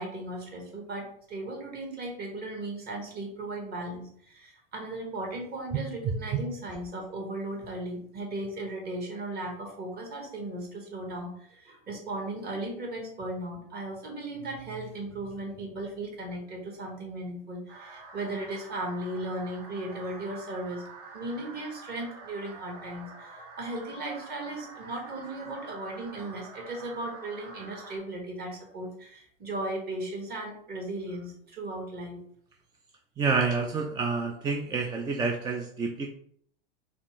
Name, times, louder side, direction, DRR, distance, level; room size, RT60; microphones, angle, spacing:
voice 1, 0.0-20.8 21.1-32.2, right 1 dB, 30° right, 0 dB, 1.7 m, -36 dB
sound 1, 17.7-28.0, right 3 dB, 50° right, 1.3 m, -47 dB
voice 2, 33.2-36.1, right 4 dB, 15° right, 2 dB, 0.4 m, -28 dB
4.2 x 3.5 x 3.1 m, 0.63 s
hypercardioid pair, 105°, 30 cm